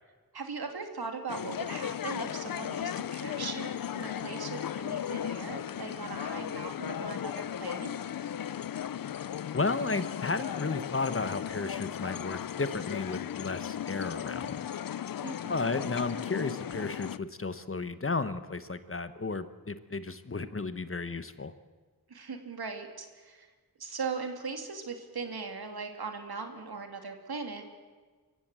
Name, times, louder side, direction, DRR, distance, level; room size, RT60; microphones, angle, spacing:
voice 1, 0.3-8.0 15.2-15.8 22.1-23.5 23.8-27.6, right 4 dB, 80° right, 5 dB, 2.7 m, -39 dB
sound 1, 1.3-17.2, left 10 dB, 65° left, 0.5 m, -36 dB
voice 2, 9.5-14.7 15.5-21.5, left 3 dB, 35° left, 12 dB, 1.1 m, -33 dB
25.0 x 15.0 x 7.6 m, 1.4 s
wide cardioid pair, 65°, 37 cm